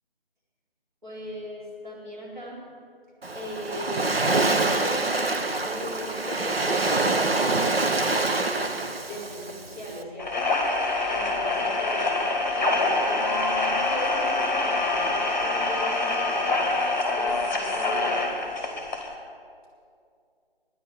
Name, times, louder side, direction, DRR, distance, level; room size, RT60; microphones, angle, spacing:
voice 1, 1.0-2.6 3.3-8.7 9.0-10.5 11.1-12.2 12.5-16.7 17.1-18.2, equal, 50° right, -6 dB, 4.5 m, -38 dB
Waves surf, 3.2-10.0, right 3 dB, 70° right, 1.0 m, -26 dB
sound 1, 10.2-19.1, left 2 dB, 15° left, 1.3 m, -25 dB
10.5 x 9.9 x 9.8 m, 2.3 s
figure-of-eight pair, 155°, 31 cm